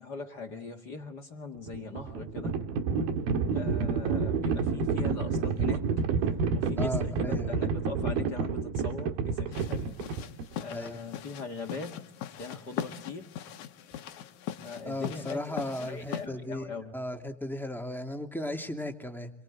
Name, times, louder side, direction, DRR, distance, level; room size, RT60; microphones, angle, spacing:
voice 1, 0.0-2.6 3.5-5.9 6.5-9.9 10.6-12.0 12.3-13.3 14.6-17.0, left 4 dB, 40° left, 5 dB, 1.7 m, -40 dB
Livestock farm animals working animals, 1.6-10.6, right 5 dB, 90° right, 3.6 m, -29 dB
voice 2, 6.8-7.6 10.7-11.0 14.8-19.3, left 1 dB, ahead, 3 dB, 1.6 m, -36 dB
sound 1, 9.5-16.3, left 10 dB, 65° left, 2.3 m, -40 dB
28.5 x 23.0 x 7.9 m, 0.68 s
omnidirectional pair, 4.1 m